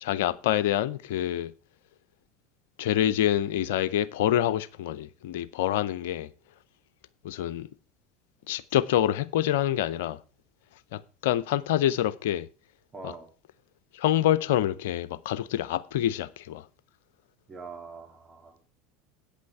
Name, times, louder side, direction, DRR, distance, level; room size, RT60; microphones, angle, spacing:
voice 1, 0.0-1.5 2.8-6.3 7.2-7.7 8.5-10.2 10.9-12.5 13.0-13.1 13.9-16.6, left 12 dB, 65° left, 0.5 m, -26 dB
voice 2, 12.9-13.3 17.5-18.7, right 4 dB, 20° right, 2.7 m, -43 dB
8.5 x 8.5 x 4.7 m
figure-of-eight pair, 75°, 0 cm